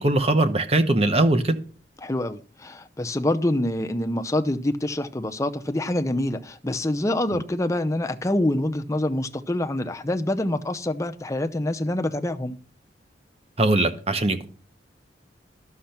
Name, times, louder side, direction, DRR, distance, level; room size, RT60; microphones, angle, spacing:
voice 1, 0.0-1.6 13.6-14.4, right 2 dB, 35° right, 0.9 m, -21 dB
voice 2, 2.0-12.6, left 1 dB, 15° left, 0.6 m, -26 dB
12.0 x 6.5 x 5.8 m
head